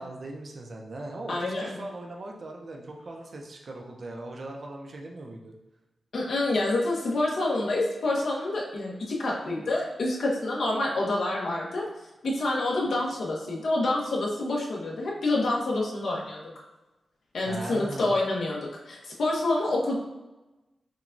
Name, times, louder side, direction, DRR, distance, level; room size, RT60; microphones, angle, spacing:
voice 1, 0.0-5.6 17.4-18.1 19.0-19.2, right 2 dB, 45° right, 1 dB, 0.6 m, -39 dB
voice 2, 1.3-1.7 6.1-11.8 12.2-16.5 17.3-19.9, left 2 dB, 65° left, -2 dB, 0.9 m, -27 dB
5.9 x 2.3 x 2.6 m, 1.1 s
wide cardioid pair, 155°, 0 cm